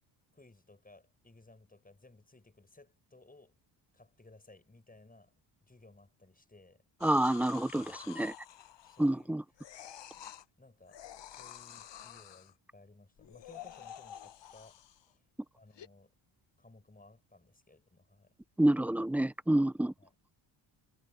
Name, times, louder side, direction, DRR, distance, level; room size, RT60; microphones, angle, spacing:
voice 1, 0.3-3.6 3.9-5.3 5.6-7.2 7.7-8.4 8.8-9.4 10.6-11.0 11.3-15.2 15.5-16.1 16.6-18.3 20.0-20.2, left 2 dB, 15° left, 6.7 m, -59 dB
sound 1, 7.0-9.2 9.6-10.5 10.9-12.5 13.2-15.1 15.8-15.9, left 10 dB, 60° left, 1.0 m, -49 dB
voice 2, 7.0-7.8 8.2-8.3 9.0-9.4 18.6-19.9, right 1 dB, 5° right, 0.3 m, -27 dB
cardioid pair, 85°, 49 cm